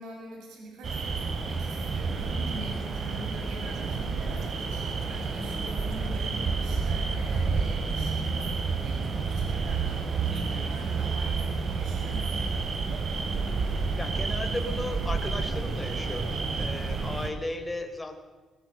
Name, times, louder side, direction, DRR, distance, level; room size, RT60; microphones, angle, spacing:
voice 1, 0.0-12.5, right 2 dB, 85° right, 0 dB, 6.8 m, -43 dB
sound 1, 0.8-17.3, right 4 dB, 50° right, 3.1 m, -30 dB
voice 2, 10.3-10.7 14.0-18.1, left 1 dB, 15° left, 5 dB, 3.7 m, -36 dB
20.0 x 20.0 x 7.9 m, 1.3 s
cardioid pair, 90°, 0 cm